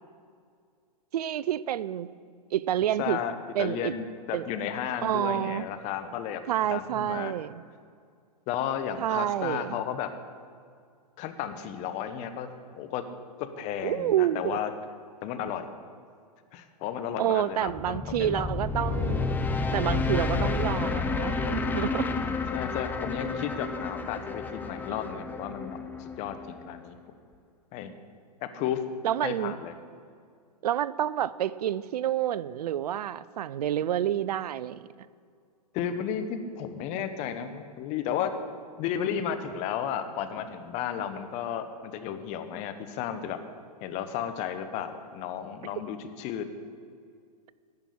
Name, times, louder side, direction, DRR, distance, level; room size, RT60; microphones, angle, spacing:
voice 1, 1.1-2.1 2.5-3.2 3.5-3.9 4.3-4.4 5.0-5.7 6.5-7.6 9.0-9.8 13.8-14.6 17.2-19.4 19.7-22.1 29.0-29.5 30.6-34.8, right 11 dB, 75° right, 18 dB, 0.5 m, -28 dB
voice 2, 3.0-6.4 6.7-7.3 8.5-10.1 11.2-12.5 12.8-13.1 13.4-14.7 15.2-15.7 16.5-18.5 22.5-27.0 27.7-27.9 28.5-28.8 29.2-29.7 35.7-36.3 36.5-38.3 38.8-43.4 43.8-46.5, left 9 dB, 35° left, 9 dB, 1.0 m, -33 dB
sound 1, 17.7-26.8, left 4 dB, 10° left, 0.5 m, -30 dB
10.5 x 6.1 x 8.5 m, 2.2 s
hypercardioid pair, 125°, 20 cm